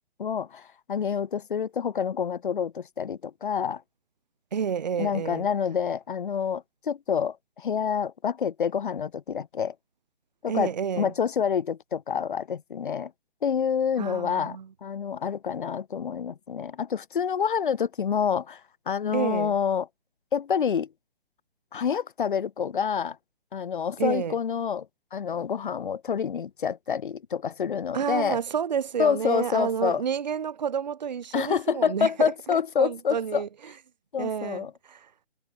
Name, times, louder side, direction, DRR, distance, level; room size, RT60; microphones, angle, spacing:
voice 1, 0.2-3.8 5.0-9.7 10.4-10.7 11.0-13.1 13.4-18.6 18.9-19.9 20.3-20.9 21.7-23.2 23.5-24.9 25.1-28.4 29.0-30.0 31.3-33.4 34.1-34.7, left 7 dB, 50° left, 1.3 m, -27 dB
voice 2, 4.5-5.5 10.5-11.1 14.0-14.7 19.1-19.5 24.0-24.3 27.9-33.5 34.2-35.1, right 7 dB, 40° right, 0.5 m, -30 dB
hypercardioid pair, 165°, 33 cm